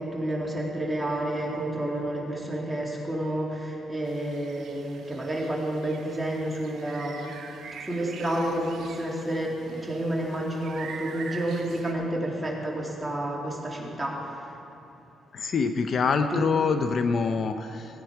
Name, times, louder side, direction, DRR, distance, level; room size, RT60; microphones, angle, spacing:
voice 1, 0.0-7.3 7.7-14.6 16.3-16.4, right 1 dB, 10° right, -3 dB, 2.6 m, -30 dB
sound 1, 4.0-11.9, right 6 dB, 65° right, 1.0 m, -44 dB
voice 2, 15.3-18.0, left 5 dB, 55° left, 8 dB, 0.6 m, -25 dB
16.5 x 9.1 x 4.7 m, 3.0 s
cardioid pair, 90°, 0 cm